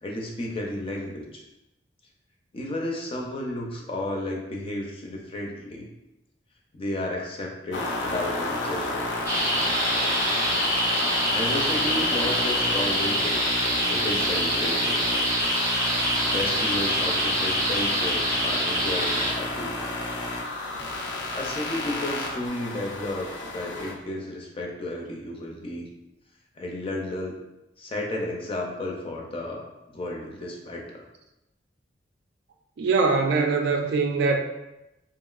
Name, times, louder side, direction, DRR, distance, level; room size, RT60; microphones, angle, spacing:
voice 1, 0.0-1.5 2.5-5.9 6.7-9.1 11.3-13.4 13.9-15.0 16.3-19.8 21.3-25.9 26.6-27.4 27.8-29.7 29.9-31.0, left 1 dB, 30° left, -1 dB, 0.4 m, -32 dB
sound 1, 7.7-23.9, left 2 dB, 80° left, 0.5 m, -31 dB
sound 2, 9.3-19.3, equal, 15° right, 0.6 m, -25 dB
voice 2, 32.8-34.4, right 4 dB, 65° right, 4 dB, 0.3 m, -22 dB
2.9 x 2.6 x 2.4 m, 0.94 s
head